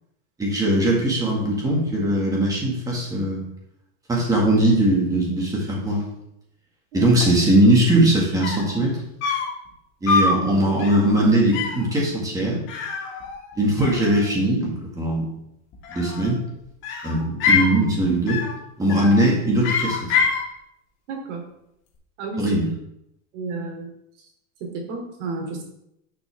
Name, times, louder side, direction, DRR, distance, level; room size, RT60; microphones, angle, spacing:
voice 1, 0.4-3.4 4.1-6.0 6.9-9.0 10.0-12.6 13.6-15.3 15.9-16.4 17.0-18.4 18.8-20.1 22.4-22.7, right 1 dB, 10° right, -2 dB, 1.9 m, -20 dB
sound 1, 8.1-8.2 8.4-8.8 9.2-9.6 10.1-10.4 10.8-11.1 11.5-11.9 12.7-13.5 13.8-14.5 15.7-16.4 16.8-17.8 18.3-18.6 18.9-19.2 19.6-20.4, left 5 dB, 30° left, 1.9 m, -24 dB
voice 2, 21.1-21.4 22.2-22.5 23.3-23.9 24.6-25.6, right 3 dB, 60° right, 1 dB, 3.0 m, -31 dB
11.0 x 6.0 x 3.5 m, 0.81 s
supercardioid pair, 165°, 41 cm